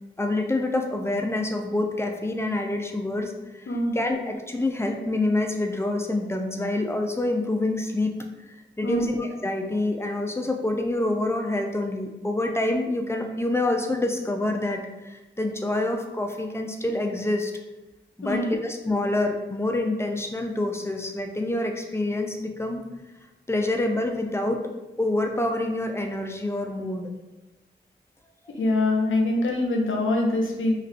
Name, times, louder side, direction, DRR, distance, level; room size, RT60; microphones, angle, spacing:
voice 1, 0.2-3.7 3.9-8.1 8.8-17.5 18.2-22.8 23.5-24.6 25.0-27.1, left 2 dB, 15° left, 3 dB, 0.4 m, -27 dB
voice 2, 28.6-30.7, left 2 dB, 80° left, 0 dB, 0.6 m, -24 dB
3.2 x 2.4 x 2.4 m, 1.1 s
cardioid pair, 55°, 20 cm